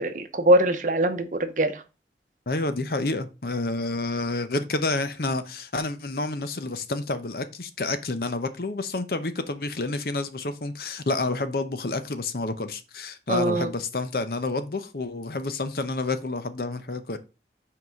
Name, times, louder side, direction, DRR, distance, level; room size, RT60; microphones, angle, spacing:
voice 1, 0.0-1.8 13.3-13.7, right 1 dB, 45° right, 0.8 m, -22 dB
voice 2, 2.5-17.2, left 2 dB, 55° left, 0.7 m, -29 dB
5.9 x 4.7 x 5.2 m
head